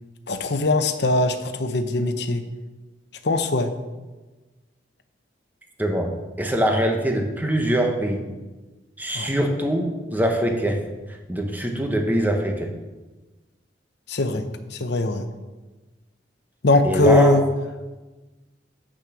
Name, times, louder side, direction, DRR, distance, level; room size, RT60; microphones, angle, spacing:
voice 1, 0.3-2.4 3.2-3.7 9.1-9.3 14.1-15.2 16.6-17.4, left 2 dB, 60° left, 8 dB, 0.8 m, -21 dB
voice 2, 5.8-6.1 6.4-8.2 9.0-10.8 11.3-12.7 14.4-14.5 16.8-17.4, equal, 10° right, 3 dB, 1.0 m, -23 dB
8.5 x 6.3 x 6.1 m, 1.2 s
head